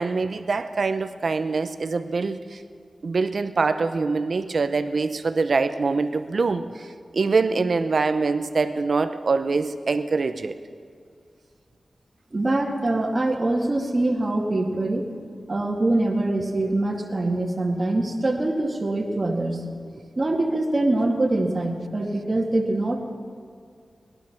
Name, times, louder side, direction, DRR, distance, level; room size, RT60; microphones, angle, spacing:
voice 1, 0.0-2.6 3.0-6.9 7.1-10.5, right 4 dB, 60° right, 10 dB, 0.8 m, -24 dB
voice 2, 12.3-15.0 15.5-19.7 20.2-23.0, right 2 dB, 40° right, 1 dB, 2.0 m, -24 dB
19.0 x 12.0 x 5.9 m, 2.2 s
wide cardioid pair, 85°, 0 cm